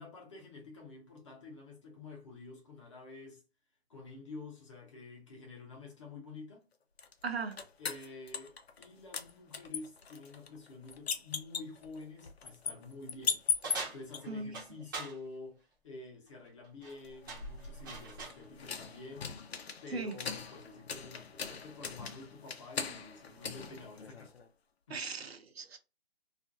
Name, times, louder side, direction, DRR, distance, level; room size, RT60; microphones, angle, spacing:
voice 1, 0.0-3.4 3.9-6.6 7.8-13.4 13.9-19.3 19.8-24.3 24.9-25.0, left 3 dB, 30° left, 0.8 m, -49 dB
sound 1, 7.0-8.9 9.1-14.2 17.0-24.5, left 5 dB, 75° left, 0.6 m, -40 dB
voice 2, 7.2-7.6 14.3-14.6 19.9-20.2 24.9-25.8, right 4 dB, 70° right, 0.7 m, -38 dB
sound 2, 13.6-15.2 16.6-16.9 17.3-18.4, right 3 dB, 20° right, 0.6 m, -42 dB
2.5 x 2.1 x 2.6 m
figure-of-eight pair, 155°, 32 cm